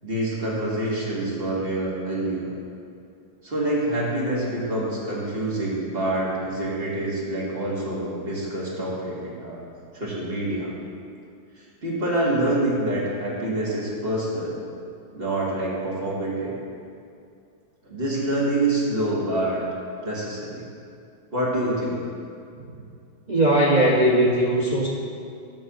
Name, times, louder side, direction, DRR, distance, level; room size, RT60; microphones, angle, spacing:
voice 1, 0.0-2.5 3.4-9.6 9.9-10.7 11.8-14.6 15.1-16.5 17.8-19.6 20.0-20.6 21.3-22.0, right 1 dB, 30° right, -6 dB, 2.0 m, -26 dB
voice 2, 23.3-24.9, right 1 dB, 55° right, -3 dB, 0.4 m, -19 dB
11.0 x 4.0 x 6.9 m, 2.4 s
omnidirectional pair, 2.0 m